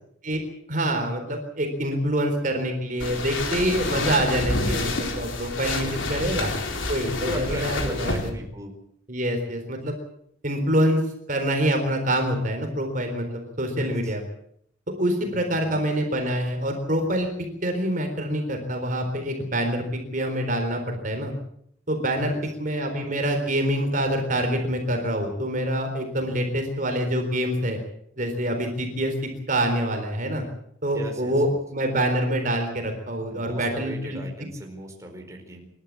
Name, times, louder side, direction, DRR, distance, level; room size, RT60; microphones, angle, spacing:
voice 1, 0.7-6.5 6.9-8.3 9.1-9.9 10.4-11.0 11.3-14.2 15.0-21.3 21.9-22.3 22.6-27.8 28.2-29.1 29.5-30.4 30.8-34.2, right 1 dB, 45° right, 4 dB, 3.9 m, -26 dB
sound 1, 3.0-8.3, left 2 dB, 85° left, 3.8 m, -28 dB
voice 2, 3.9-4.4 7.2-8.7 13.8-14.2 15.3-15.8 22.2-22.4 30.9-31.6 33.3-35.7, right 1 dB, 15° right, 2 dB, 4.5 m, -38 dB
27.5 x 13.0 x 8.5 m, 0.71 s
head